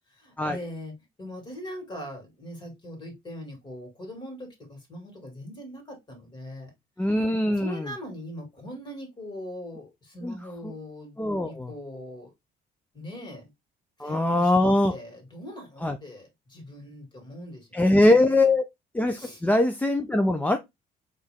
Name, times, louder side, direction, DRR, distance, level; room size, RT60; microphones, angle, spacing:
voice 1, 0.1-6.7 7.3-11.2 11.4-12.3 12.9-13.5 14.0-17.8 18.1-18.5 19.1-19.4, equal, 25° left, 2.5 m, -41 dB
voice 2, 7.0-7.8 10.2-10.4 11.2-11.7 14.0-14.9 15.8-16.0 17.7-18.6 18.9-20.6, left 2 dB, 10° left, 0.5 m, -22 dB
4.5 x 3.1 x 3.4 m
cardioid pair, 110°, 17 cm